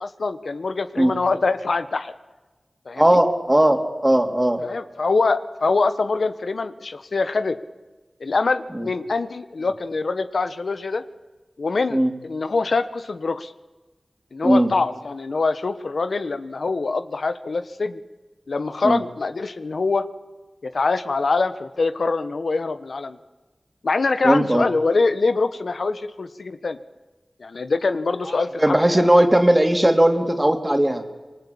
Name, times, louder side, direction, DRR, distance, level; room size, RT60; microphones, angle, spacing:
voice 1, 0.0-2.1 2.9-3.2 4.6-7.6 8.2-11.0 11.6-13.5 14.3-18.0 18.5-20.0 20.6-23.2 23.8-26.8 27.4-29.1, left 3 dB, 85° left, 11 dB, 1.1 m, -24 dB
voice 2, 3.0-4.6 8.7-8.9 11.9-12.1 14.4-14.7 18.8-19.0 24.2-24.7 28.6-31.0, right 1 dB, 20° right, 5 dB, 3.4 m, -18 dB
26.0 x 22.5 x 8.7 m, 1.2 s
wide cardioid pair, 45°, 0 cm